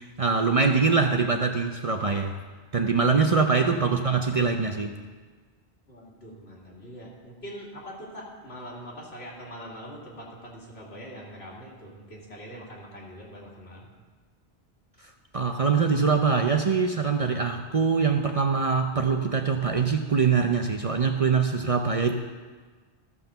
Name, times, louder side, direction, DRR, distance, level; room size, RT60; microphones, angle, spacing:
voice 1, 0.0-2.4 2.7-5.0 15.3-22.1, right 5 dB, 40° right, 4 dB, 0.6 m, -23 dB
voice 2, 5.9-13.9, equal, 75° left, -4 dB, 2.5 m, -43 dB
14.0 x 5.8 x 6.7 m, 1.4 s
omnidirectional pair, 1.1 m